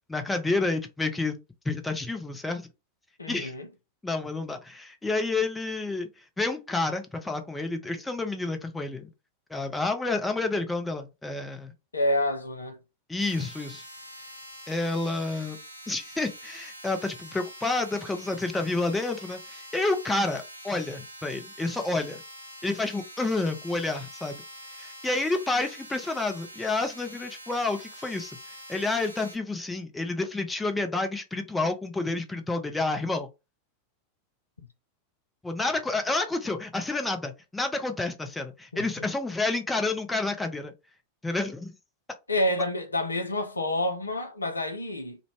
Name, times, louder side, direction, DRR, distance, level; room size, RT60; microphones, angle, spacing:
voice 1, 0.1-1.4 1.7-2.6 3.3-3.5 4.0-6.1 6.4-9.1 9.5-11.7 13.1-13.8 14.7-15.6 15.9-22.2 22.6-24.4 24.8-28.4 28.7-33.3 35.4-40.7 41.2-41.7, left 3 dB, 10° left, 0.5 m, -29 dB
voice 2, 3.2-3.7 11.9-12.8 34.6-34.7 38.7-38.8 42.3-45.2, left 1 dB, 80° left, 0.5 m, -28 dB
sound 1, 13.2-29.4, equal, 85° right, 0.6 m, -45 dB
2.5 x 2.1 x 3.1 m
figure-of-eight pair, 90°, 0 cm